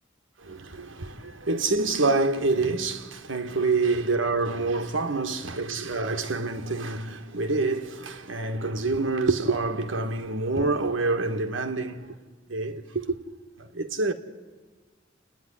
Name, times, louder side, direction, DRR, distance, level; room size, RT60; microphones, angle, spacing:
voice 1, 0.4-12.2 12.5-13.2 13.6-14.1, right 3 dB, 85° right, 1.5 m, -27 dB
29.5 x 9.9 x 9.9 m
head